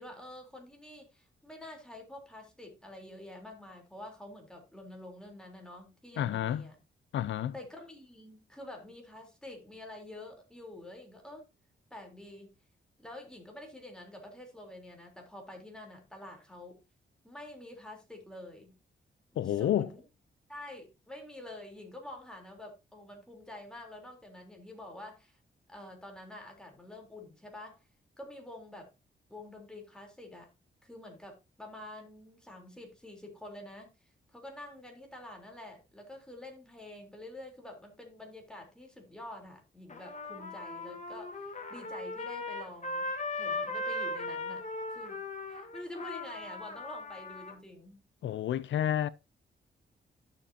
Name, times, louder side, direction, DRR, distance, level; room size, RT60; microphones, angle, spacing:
voice 1, 0.0-6.8 7.5-11.4 11.9-12.5 13.0-16.8 17.2-18.7 19.3-20.0 20.5-25.4 25.7-27.8 28.2-28.9 29.3-30.5 30.8-33.9 34.3-43.1 43.4-44.6 44.9-45.2 45.5-48.0, left 1 dB, 5° left, 3.5 m, -47 dB
voice 2, 6.2-6.6 7.1-7.5 19.4-19.9 48.2-49.1, left 11 dB, 75° left, 0.4 m, -30 dB
Trumpet, 39.9-47.5, left 2 dB, 40° left, 1.8 m, -38 dB
11.5 x 7.1 x 2.8 m
cardioid pair, 100°, 19 cm